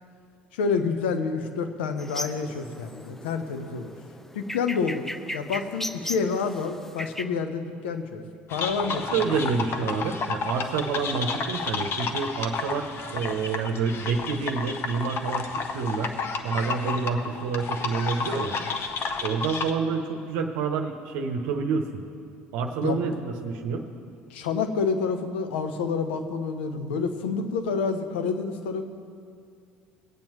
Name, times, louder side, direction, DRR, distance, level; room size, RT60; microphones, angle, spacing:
voice 1, 0.5-3.9 4.3-5.1 5.3-8.2 8.5-9.5 22.8-23.0 24.3-28.8, left 5 dB, 70° left, 8 dB, 0.8 m, -28 dB
sound 1, 2.0-7.2, left 1 dB, 5° left, 0.5 m, -37 dB
sound 2, 8.5-19.7, left 4 dB, 40° left, 0.9 m, -31 dB
voice 2, 8.8-15.5 15.7-16.1 16.4-18.6 19.2-22.0 22.5-23.9, right 5 dB, 65° right, 4 dB, 0.8 m, -28 dB
20.0 x 8.8 x 3.0 m, 2.4 s
figure-of-eight pair, 60°, 6 cm